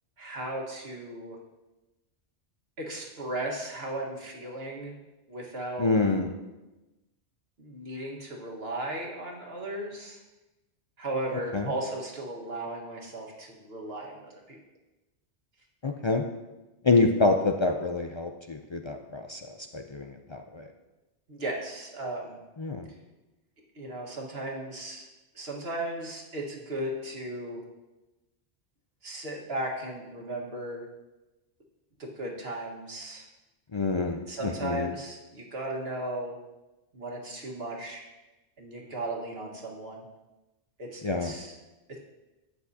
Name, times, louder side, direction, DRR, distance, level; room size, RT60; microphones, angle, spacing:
voice 1, 0.2-1.4 2.8-5.0 5.3-5.9 7.6-10.2 11.0-14.6 21.3-22.4 23.8-25.1 25.4-27.6 29.0-30.9 32.0-33.3 34.3-36.4 36.9-38.0 38.6-40.0 40.8-41.6, right 1 dB, 60° right, -1 dB, 1.8 m, -36 dB
voice 2, 5.8-6.3 11.5-11.7 15.8-16.3 16.8-20.7 22.6-22.9 33.7-34.9 41.0-41.3, left 3 dB, 45° left, 4 dB, 0.4 m, -27 dB
12.5 x 8.7 x 2.8 m, 1.1 s
omnidirectional pair, 1.2 m